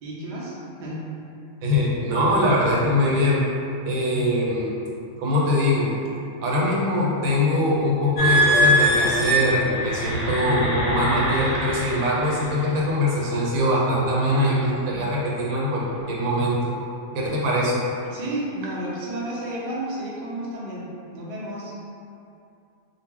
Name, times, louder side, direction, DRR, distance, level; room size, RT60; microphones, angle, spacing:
voice 1, 0.0-1.0 18.1-20.8 21.1-21.7, right 1 dB, 60° right, -6 dB, 0.5 m, -32 dB
voice 2, 1.6-3.4 3.8-4.7 5.2-5.9 6.4-16.7 17.1-17.8, left 1 dB, 85° right, -4 dB, 1.1 m, -22 dB
sound 1, 8.2-12.7 13.3-13.6 14.2-14.5, equal, 85° left, 1.1 m, -23 dB
2.3 x 2.0 x 3.5 m, 2.6 s
omnidirectional pair, 1.4 m